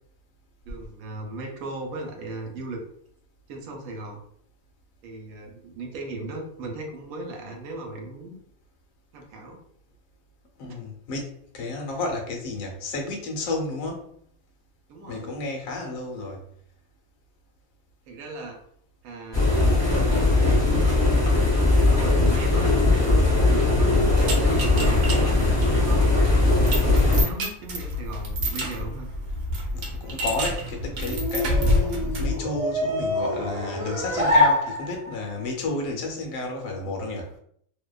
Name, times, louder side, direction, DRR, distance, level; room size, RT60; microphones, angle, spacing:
voice 1, 0.6-2.8 3.5-4.2 5.0-8.4 9.1-9.6 14.9-15.3 18.1-18.6 19.0-19.8 21.7-26.1 26.8-29.1, right 2 dB, 90° right, 2 dB, 1.1 m, -37 dB
voice 2, 10.6-14.1 15.1-16.4 29.7-37.4, left 2 dB, 75° left, 1 dB, 1.0 m, -32 dB
sound 1, 19.3-27.2, left 2 dB, 25° left, 0.7 m, -20 dB
sound 2, 24.2-32.4, left 1 dB, 65° right, 0.9 m, -28 dB
sound 3, 30.4-35.3, left 1 dB, 30° right, 1.0 m, -26 dB
2.7 x 2.1 x 2.2 m, 0.64 s
omnidirectional pair, 1.5 m